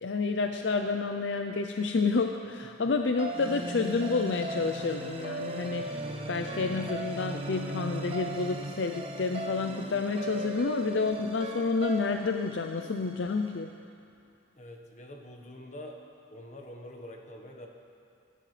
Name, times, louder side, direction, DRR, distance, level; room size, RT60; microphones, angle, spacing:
voice 1, 0.0-5.9 6.3-13.7, left 4 dB, 60° left, 5 dB, 0.5 m, -29 dB
sound 1, 3.2-13.5, right 1 dB, 30° right, 0.7 m, -38 dB
voice 2, 14.6-16.0 16.3-17.7, left 1 dB, 35° left, 1 dB, 1.3 m, -45 dB
25.0 x 11.0 x 3.3 m, 2.4 s
head